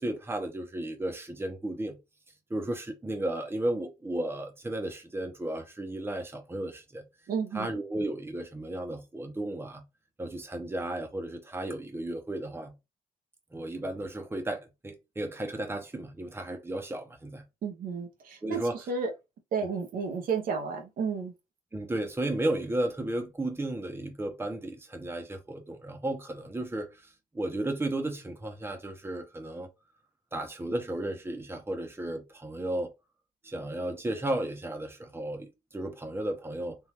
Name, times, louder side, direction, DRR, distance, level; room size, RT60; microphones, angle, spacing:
voice 1, 0.0-2.0 2.5-7.0 7.5-9.8 10.2-12.7 13.5-17.4 18.4-18.8 21.7-27.0 27.3-29.7 30.3-32.9 33.4-36.8, right 1 dB, 15° right, 1.0 m, -34 dB
voice 2, 7.3-7.7 17.6-19.1 19.5-21.3, right 5 dB, 70° right, 1.0 m, -32 dB
3.6 x 2.6 x 2.9 m
cardioid pair, 85°, 15 cm